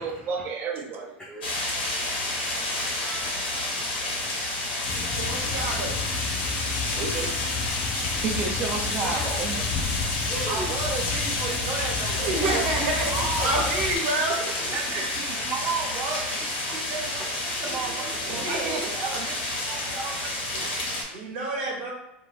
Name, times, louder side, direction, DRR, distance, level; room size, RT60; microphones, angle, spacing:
voice 1, 0.0-1.5 4.9-5.1 7.0-7.4 8.2-13.8 14.7-20.8, right 5 dB, 40° right, 3 dB, 0.6 m, -33 dB
sound 1, 1.4-21.0, left 1 dB, 90° left, 1.1 m, -30 dB
voice 2, 2.2-3.9 6.2-7.0 7.3-7.5 7.8-8.6 9.0-9.4 10.3-10.8 15.4-15.6 17.2-17.3 19.7-20.4 21.1-21.3, right 1 dB, 10° left, -6 dB, 0.6 m, -42 dB
sound 2, 4.8-14.0, left 4 dB, 55° left, 0.6 m, -30 dB
voice 3, 5.1-6.0 12.2-14.6 14.9-15.0 18.2-18.9 21.1-21.9, right 2 dB, 70° right, -1 dB, 0.9 m, -28 dB
2.5 x 2.5 x 3.2 m, 0.89 s
supercardioid pair, 110°, 5 cm